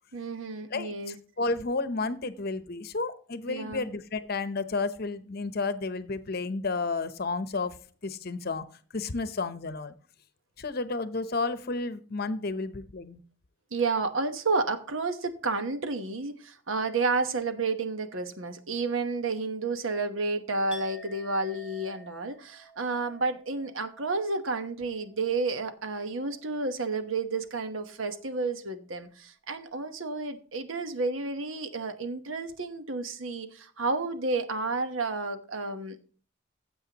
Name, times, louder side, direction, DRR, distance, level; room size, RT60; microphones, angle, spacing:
voice 1, 0.1-1.2 3.5-3.9 13.7-36.0, right 3 dB, 80° right, 1.1 m, -31 dB
voice 2, 0.7-8.6 8.9-9.9 10.6-13.2, left 3 dB, 50° left, 0.8 m, -32 dB
Chink clink, 20.7-26.6 26.9-27.3, equal, 5° right, 1.9 m, -52 dB
15.5 x 7.7 x 2.9 m
head